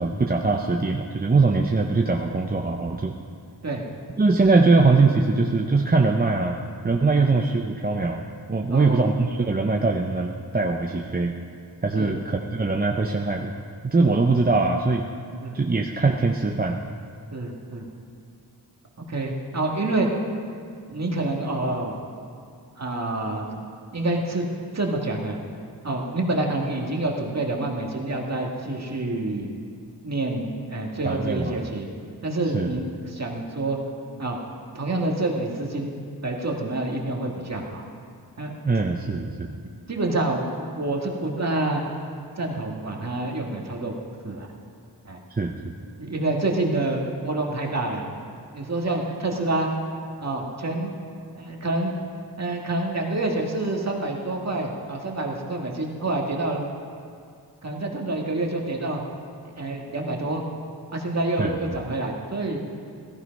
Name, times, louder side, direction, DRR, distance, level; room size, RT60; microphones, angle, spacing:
voice 1, 0.0-3.1 4.2-11.4 11.8-13.5 13.8-15.1 15.5-16.8 31.0-31.7 32.5-32.7 38.6-39.6 45.3-45.7 61.4-61.8, right 3 dB, 25° right, 1 dB, 0.7 m, -22 dB
voice 2, 8.7-9.0 11.9-12.2 15.4-15.6 17.3-17.9 19.1-20.1 20.9-22.0 22.8-23.4 23.9-24.5 24.7-25.4 25.8-29.5 30.0-31.9 32.2-33.8 34.2-34.4 34.7-35.9 36.2-37.8 38.4-38.5 39.0-39.2 39.9-41.8 42.4-43.9 44.2-44.5 45.1-45.2 46.0-48.1 48.5-49.7 50.2-50.9 51.3-51.9 52.4-56.6 57.6-59.0 59.5-60.4 60.9-62.6, right 2 dB, 40° right, 0 dB, 1.9 m, -27 dB
16.5 x 14.5 x 5.3 m, 2.3 s
wide cardioid pair, 135°, 40 cm